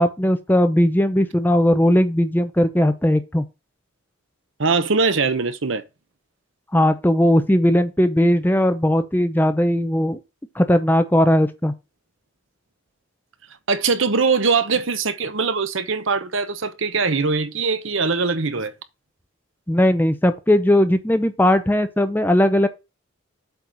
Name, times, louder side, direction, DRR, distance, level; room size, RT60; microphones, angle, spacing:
voice 1, 0.0-3.4 6.7-10.2 10.5-11.7 19.7-22.7, left 1 dB, 10° left, 0.7 m, -18 dB
voice 2, 4.6-5.8 13.7-18.7, right 4 dB, 70° right, 1.0 m, -21 dB
8.1 x 4.4 x 4.8 m
head